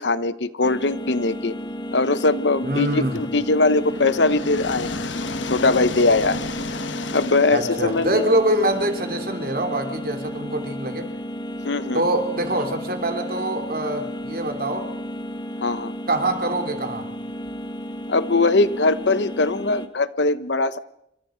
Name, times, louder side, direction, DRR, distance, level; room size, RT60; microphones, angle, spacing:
voice 1, 0.0-1.5 1.9-4.9 5.5-6.4 7.1-8.2 11.6-12.0 15.6-15.9 18.1-20.8, left 3 dB, 70° left, 14 dB, 1.0 m, -21 dB
sound 1, 0.6-19.9, equal, 25° left, 1.8 m, -33 dB
voice 2, 2.6-3.2 7.5-11.1 11.9-14.9 16.1-17.1, right 1 dB, 55° right, 5 dB, 3.1 m, -24 dB
sound 2, 3.2-9.0, left 3 dB, 85° left, 1.2 m, -33 dB
27.5 x 25.0 x 5.2 m, 0.80 s
head